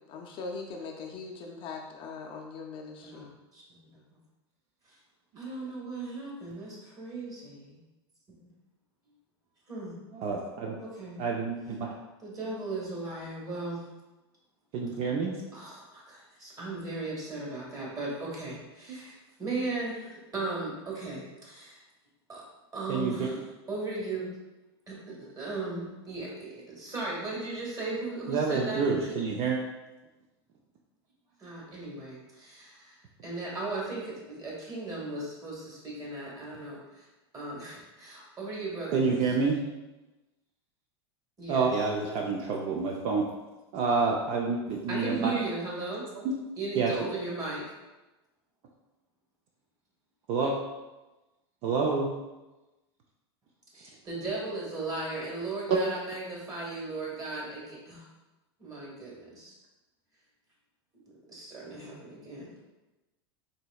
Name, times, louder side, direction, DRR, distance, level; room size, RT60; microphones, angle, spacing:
voice 1, 0.1-3.3, left 4 dB, 40° left, 1 dB, 0.5 m, -40 dB
voice 2, 5.4-7.8 9.7-10.0 10.8-11.2 12.2-13.8 15.5-21.8 22.3-22.4 22.7-23.4 23.7-24.3 24.9-28.9 31.4-37.1 37.3-39.2 41.4-41.7 44.9-46.1 46.6-47.7 53.7-58.1 58.6-59.5 60.9-62.5, right 3 dB, 25° right, -4 dB, 1.5 m, -37 dB
voice 3, 10.1-10.8 11.2-11.9 14.7-15.3 22.9-23.3 28.3-29.6 38.9-39.6 41.5-43.2 43.7-45.3 46.2-46.3 46.8-46.9 50.3-50.5 51.6-52.1 55.7-55.8, right 4 dB, 50° right, 0 dB, 0.5 m, -28 dB
3.9 x 3.2 x 2.3 m, 1.1 s
hypercardioid pair, 105°, 14 cm